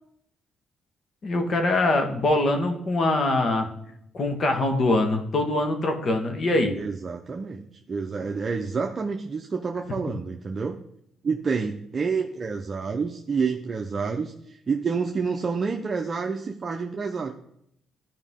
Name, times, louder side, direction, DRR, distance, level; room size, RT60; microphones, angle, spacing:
voice 1, 1.2-3.7 4.1-6.8, left 2 dB, 50° left, 4 dB, 1.8 m, -23 dB
voice 2, 6.8-7.6 7.9-10.8 11.2-17.3, right 5 dB, 35° right, 2 dB, 0.9 m, -28 dB
14.0 x 5.1 x 3.8 m, 0.74 s
cardioid pair, 90°, 0 cm